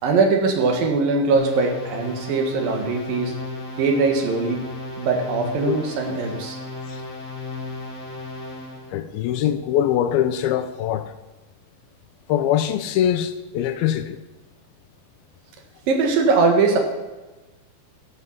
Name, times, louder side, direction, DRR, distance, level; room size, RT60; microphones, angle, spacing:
voice 1, 0.0-3.3 3.8-4.6 5.0-6.6 15.9-16.8, right 4 dB, 70° right, 3.2 m, -21 dB
sound 1, 1.3-8.9, left 3 dB, 45° left, 3.0 m, -34 dB
voice 2, 8.9-11.1 12.3-14.2, left 10 dB, 85° left, 2.5 m, -22 dB
14.5 x 5.5 x 7.3 m
omnidirectional pair, 4.3 m